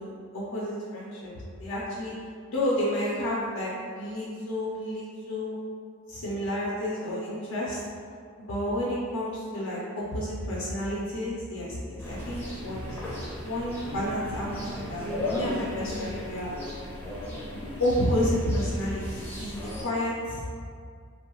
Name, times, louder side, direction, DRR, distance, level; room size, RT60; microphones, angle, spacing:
voice 1, 0.0-1.3 1.6-2.1 2.5-5.6 6.1-7.8 8.4-12.8 13.4-16.5 17.8-20.5, left 1 dB, 75° left, -6 dB, 0.5 m, -30 dB
sound 1, 12.0-19.8, left 1 dB, 10° left, 0.4 m, -35 dB
2.6 x 2.0 x 2.8 m, 2.1 s
head